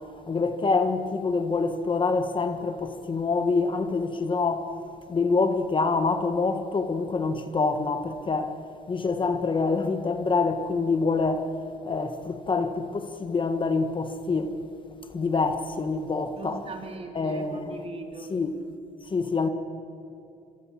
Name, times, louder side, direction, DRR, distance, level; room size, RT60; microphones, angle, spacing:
voice 1, 0.3-4.7 5.1-8.6 8.9-11.5 11.8-14.5 15.1-16.6 17.1-17.8 18.3-18.5 19.1-19.5, left 4 dB, 30° left, 1.6 m, -26 dB
voice 2, 16.4-18.4, right 3 dB, 35° right, 3.9 m, -39 dB
26.5 x 23.0 x 7.6 m
cardioid pair, 110°, 17 cm